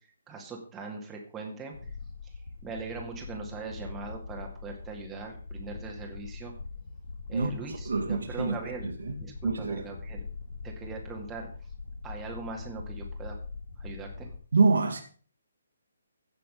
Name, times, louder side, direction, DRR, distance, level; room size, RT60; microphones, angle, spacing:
voice 1, 0.3-1.7 2.6-6.5 7.3-8.9 9.2-10.2 10.6-11.5 12.0-13.4 13.8-14.3, right 4 dB, 10° right, 2.2 m, -40 dB
sound 1, 1.7-14.4, left 4 dB, 60° left, 2.7 m, -42 dB
voice 2, 7.3-9.9 14.5-15.0, right 4 dB, 60° right, 2.3 m, -27 dB
15.5 x 6.7 x 5.3 m
figure-of-eight pair, 135°, 0 cm